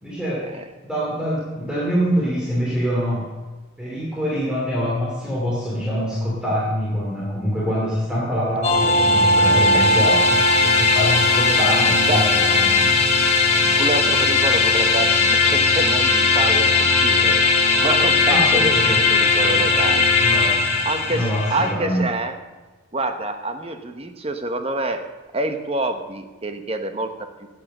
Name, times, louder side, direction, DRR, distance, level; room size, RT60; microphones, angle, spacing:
voice 1, 0.0-0.5 0.8-3.3 3.8-12.8 18.3-18.9 20.2-20.6 21.1-22.0, equal, 5° right, -6 dB, 2.6 m, -24 dB
sound 1, 8.6-21.7, left 3 dB, 30° left, 1.8 m, -18 dB
voice 2, 13.6-20.1 20.8-22.4 22.9-25.1 25.3-27.5, right 2 dB, 30° right, 7 dB, 1.0 m, -27 dB
15.5 x 8.6 x 6.6 m, 1.2 s
head